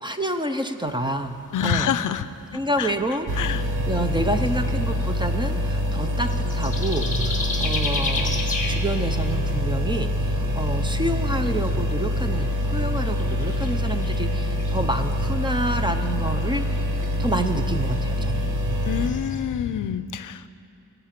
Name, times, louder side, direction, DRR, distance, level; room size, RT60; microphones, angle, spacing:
voice 1, 0.0-1.9 2.5-3.3 3.8-8.3 8.7-16.7 17.2-18.5, right 1 dB, 15° right, 7 dB, 0.5 m, -28 dB
sound 1, 0.9-19.4, left 3 dB, 25° left, 1.5 m, -37 dB
voice 2, 1.5-2.2 2.8-2.9 3.4-3.6 18.8-20.5, left 9 dB, 65° left, 13 dB, 0.5 m, -26 dB
sound 2, 3.3-19.1, equal, 65° right, 1.2 m, -25 dB
21.5 x 8.0 x 5.9 m, 2.7 s
wide cardioid pair, 175°, 33 cm